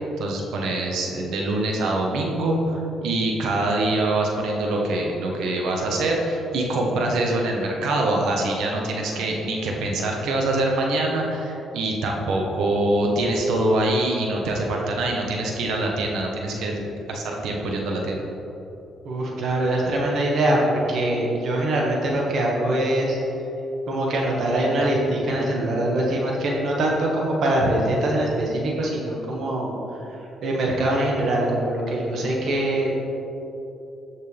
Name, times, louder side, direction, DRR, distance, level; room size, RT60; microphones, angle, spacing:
voice 1, 0.2-18.2, right 2 dB, 80° right, 0 dB, 1.4 m, -24 dB
voice 2, 19.0-23.2 23.9-29.8 30.1-33.0, right 1 dB, 65° right, -2 dB, 1.9 m, -23 dB
13.0 x 6.5 x 3.6 m, 3.0 s
cardioid pair, 90°, 0 cm